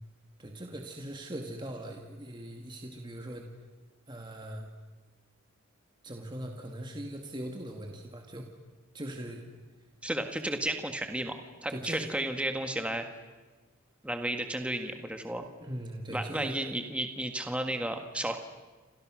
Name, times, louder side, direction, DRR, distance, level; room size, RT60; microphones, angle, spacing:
voice 1, 0.4-3.5 4.1-4.7 6.0-8.5 8.9-9.4 11.7-12.1 15.6-16.7, right 1 dB, 20° right, 2 dB, 2.1 m, -40 dB
voice 2, 10.0-13.1 14.0-15.4 16.1-18.4, right 1 dB, 5° right, 6 dB, 1.7 m, -33 dB
28.5 x 27.0 x 6.4 m, 1.3 s
head